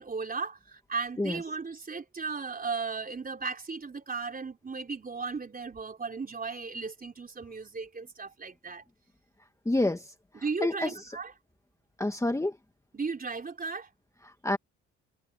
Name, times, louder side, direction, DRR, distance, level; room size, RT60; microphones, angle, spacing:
voice 1, 0.0-8.8 10.3-11.3 12.9-13.9, right 4 dB, 30° right, 3.9 m, -36 dB
voice 2, 9.7-10.1 10.6-10.9 12.0-12.5 14.2-14.6, left 2 dB, 10° left, 1.6 m, -28 dB
cardioid pair, 90°, 30 cm